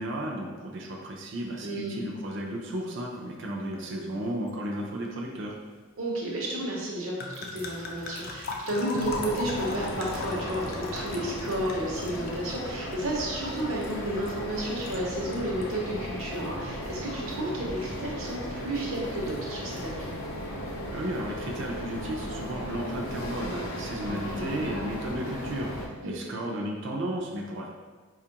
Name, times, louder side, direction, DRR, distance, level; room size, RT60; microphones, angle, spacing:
voice 1, 0.0-5.6 20.9-27.7, right 1 dB, 55° right, 0 dB, 0.4 m, -34 dB
voice 2, 1.6-2.0 6.0-20.1 24.0-24.7 26.0-26.3, right 1 dB, 80° right, -3 dB, 0.8 m, -32 dB
sound 1, 3.7-3.9 4.2-4.5 7.2-15.0 15.3-15.8, left 3 dB, 45° left, 0.4 m, -39 dB
sound 2, 9.0-25.9, equal, 85° left, 0.6 m, -36 dB
4.3 x 2.4 x 2.8 m, 1.4 s
head